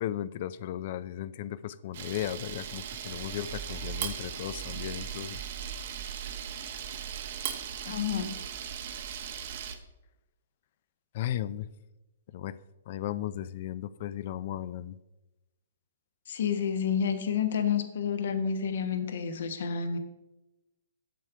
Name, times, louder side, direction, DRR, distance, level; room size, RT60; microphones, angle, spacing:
voice 1, 0.0-5.4 11.1-11.7 12.3-12.6 12.9-15.0, left 12 dB, 50° left, 17 dB, 0.4 m, -35 dB
Camera, 1.9-9.7, right 8 dB, 55° right, 0.9 m, -38 dB
voice 2, 7.8-8.3 16.3-20.0, left 7 dB, 65° left, 9 dB, 1.1 m, -29 dB
7.5 x 6.7 x 4.7 m, 1.0 s
hypercardioid pair, 135°, 0 cm